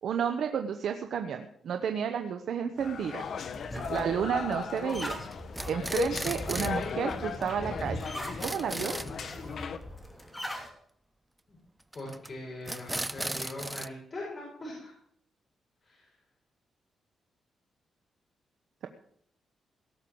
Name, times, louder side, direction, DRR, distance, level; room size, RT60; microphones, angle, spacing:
voice 1, 0.0-3.3 3.9-5.2 5.7-8.0 8.4-8.9, right 7 dB, 70° right, 6 dB, 1.0 m, -31 dB
sound 1, 2.8-9.8, left 6 dB, 60° left, 1.0 m, -37 dB
sound 2, 3.2-10.7, equal, 10° left, 2.8 m, -40 dB
sound 3, 4.5-4.9 5.3-6.8 7.1-7.2 7.4-7.5 7.8-7.9 8.1-9.1 11.9-12.3 12.7-13.9, right 1 dB, 10° right, 0.5 m, -36 dB
voice 2, 11.9-14.9 15.8-16.0, left 1 dB, 35° left, -4 dB, 5.6 m, -41 dB
17.5 x 7.0 x 7.9 m, 0.67 s
cardioid pair, 125°, 0 cm